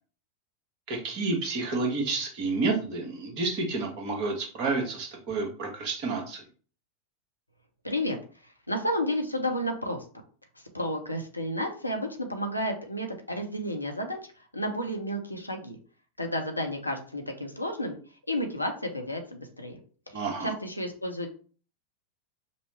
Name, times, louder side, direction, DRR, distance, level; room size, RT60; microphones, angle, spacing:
voice 1, 0.9-6.4 20.1-20.5, right 3 dB, 45° right, 2 dB, 1.1 m, -30 dB
voice 2, 7.8-8.2 8.7-10.0 10.7-14.2 14.5-15.8 16.2-18.0 18.3-19.8 20.1-21.3, equal, 85° left, 3 dB, 0.7 m, -31 dB
5.2 x 2.1 x 3.2 m, 0.40 s
figure-of-eight pair, 90°, 0 cm